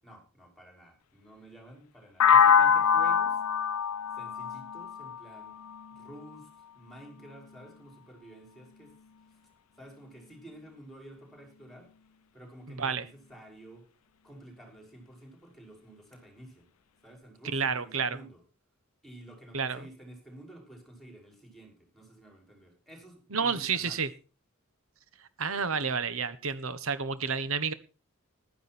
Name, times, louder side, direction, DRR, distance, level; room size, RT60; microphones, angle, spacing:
voice 1, 0.0-3.4 4.1-5.5 6.0-8.9 9.3-9.4 9.8-11.9 12.3-13.9 14.2-16.7 17.0-18.4 19.0-24.0, right 1 dB, ahead, 2 dB, 5.8 m, -51 dB
sound 1, 2.2-6.1, left 7 dB, 85° left, 0.6 m, -24 dB
voice 2, 12.7-13.0 17.5-18.2 19.5-19.9 23.3-24.1 25.4-27.7, right 5 dB, 65° right, 14 dB, 1.3 m, -30 dB
15.0 x 12.0 x 4.4 m, 0.35 s
head